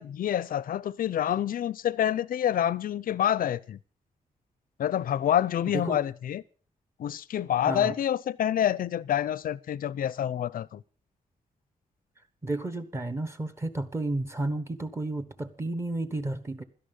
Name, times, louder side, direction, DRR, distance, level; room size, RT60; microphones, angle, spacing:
voice 1, 0.0-3.8 4.8-6.4 7.0-10.8, left 10 dB, 75° left, 0.6 m, -27 dB
voice 2, 7.7-8.0 12.4-16.6, right 2 dB, 20° right, 1.2 m, -32 dB
17.0 x 12.5 x 5.4 m
wide cardioid pair, 150°, 15 cm